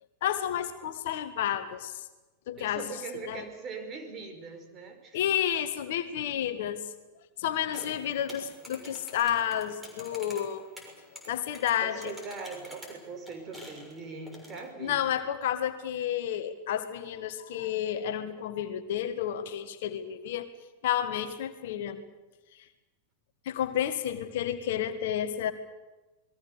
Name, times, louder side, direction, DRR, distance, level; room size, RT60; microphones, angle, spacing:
voice 1, 0.2-2.0 2.5-2.8 3.3-3.4 5.1-6.8 7.4-10.7 11.3-12.1 14.8-20.5 20.8-22.0 23.5-25.5, left 10 dB, 55° left, 9 dB, 1.6 m, -31 dB
voice 2, 2.6-5.3 11.8-15.0, right 4 dB, 30° right, 6 dB, 5.0 m, -41 dB
sound 1, 7.7-14.7, left 1 dB, 10° right, 6.5 m, -48 dB
28.0 x 21.0 x 6.8 m, 1.1 s
figure-of-eight pair, 90°, 0 cm